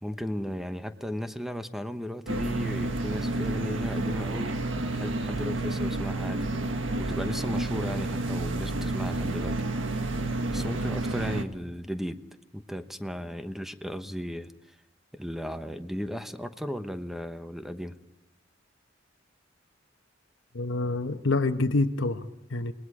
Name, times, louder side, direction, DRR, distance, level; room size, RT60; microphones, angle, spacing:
voice 1, 0.0-4.6 4.9-6.5 7.0-9.6 10.5-12.2 12.5-14.8 15.1-18.0, equal, ahead, 9 dB, 1.0 m, -35 dB
sound 1, 2.3-11.4, right 2 dB, 80° right, 1.7 m, -30 dB
voice 2, 20.5-22.7, left 2 dB, 90° left, 6 dB, 1.1 m, -27 dB
29.0 x 20.0 x 4.9 m, 0.88 s
head